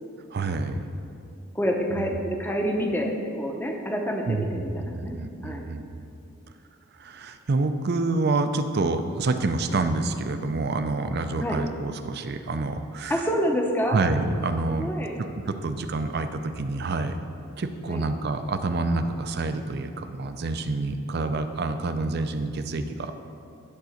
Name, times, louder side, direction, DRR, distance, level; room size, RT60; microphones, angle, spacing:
voice 1, 0.3-1.1 2.0-2.1 4.3-6.0 7.0-13.2 13.9-14.9 15.5-17.2 17.6-23.1, right 3 dB, 50° right, 8 dB, 0.5 m, -27 dB
voice 2, 1.5-5.2 5.4-5.7 11.4-11.6 13.1-14.0 14.8-15.2 17.9-18.1, equal, 10° left, 1 dB, 0.7 m, -27 dB
10.5 x 3.8 x 6.4 m, 2.5 s
head